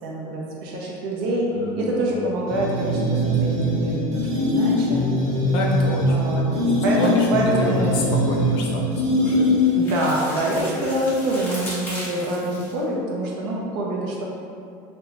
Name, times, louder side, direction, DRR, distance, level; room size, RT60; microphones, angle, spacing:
voice 1, 0.0-1.5 1.7-5.1 6.1-8.0 9.7-14.2, right 1 dB, 65° right, -3 dB, 0.6 m, -26 dB
voice 2, 1.5-2.2 5.5-6.2 6.5-9.5, left 2 dB, 50° left, -1 dB, 0.5 m, -30 dB
sound 1, 2.5-10.0, left 1 dB, 30° right, 0.9 m, -21 dB
sound 2, 7.0-8.1 9.6-12.8, equal, 15° left, 0.8 m, -36 dB
2.4 x 2.2 x 2.9 m, 2.4 s
supercardioid pair, 135°, 11 cm